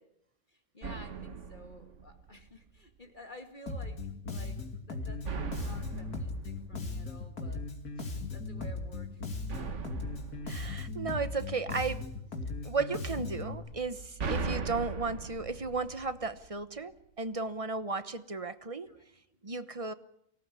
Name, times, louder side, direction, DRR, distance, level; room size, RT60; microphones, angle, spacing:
voice 1, 0.5-4.0 4.3-5.3 5.6-7.6 8.3-9.2 9.5-9.9 18.9-19.4, equal, 30° left, 6 dB, 2.5 m, -52 dB
sound 1, 0.8-2.7 5.2-7.7 9.5-11.7 13.7-16.8, right 4 dB, 55° right, 1.6 m, -40 dB
Bass guitar, 3.7-13.5, left 3 dB, 85° left, 3.2 m, -38 dB
voice 2, 10.5-12.0 12.6-18.9 19.4-19.9, right 4 dB, 25° right, 12 dB, 1.0 m, -34 dB
24.0 x 17.5 x 9.9 m, 0.75 s
omnidirectional pair, 1.6 m